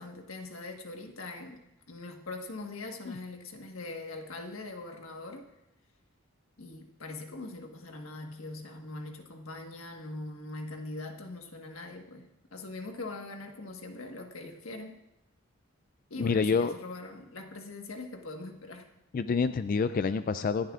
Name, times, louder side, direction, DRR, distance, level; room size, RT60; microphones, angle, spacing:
voice 1, 0.0-5.5 6.6-15.0 16.1-18.9, left 2 dB, 85° left, 3 dB, 1.4 m, -42 dB
voice 2, 16.2-16.7 19.1-20.7, left 5 dB, 40° left, 11 dB, 0.3 m, -27 dB
26.0 x 11.0 x 2.4 m, 0.89 s
head